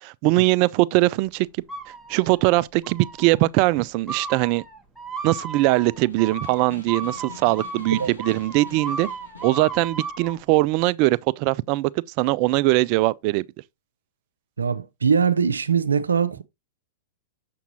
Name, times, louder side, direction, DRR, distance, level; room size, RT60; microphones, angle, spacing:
voice 1, 0.0-1.5 2.1-4.6 5.2-9.1 9.4-11.9 12.2-13.4, right 19 dB, 45° right, 0.3 m, -21 dB
sound 1, 1.7-2.4 2.8-3.4 4.1-10.4, right 4 dB, 5° right, 1.0 m, -35 dB
Snare drum, 5.9-9.8, left 6 dB, 80° left, 1.5 m, -45 dB
voice 2, 14.6-16.4, right 6 dB, 85° right, 0.6 m, -21 dB
7.0 x 5.9 x 2.7 m
hypercardioid pair, 105°, 0 cm